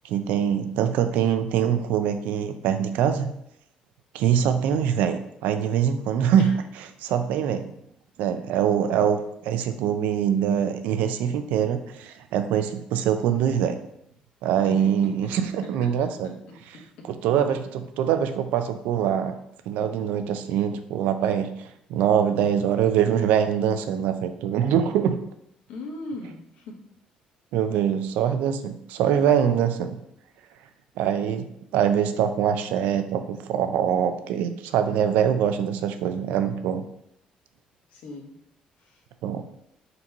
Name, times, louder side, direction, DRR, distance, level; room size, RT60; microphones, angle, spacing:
voice 1, 0.0-3.3 4.1-6.6 7.0-7.7 8.2-13.8 14.4-16.3 17.1-19.4 19.7-21.5 21.9-25.2 27.5-30.0 31.0-36.8 39.2-39.4, right 9 dB, 90° right, 9 dB, 0.4 m, -23 dB
voice 2, 14.6-15.3 17.0-17.1 25.7-26.8 37.9-38.3 38.8-39.0, left 2 dB, 80° left, 0 dB, 1.0 m, -38 dB
3.9 x 2.9 x 4.5 m, 0.75 s
cardioid pair, 115°, 3 cm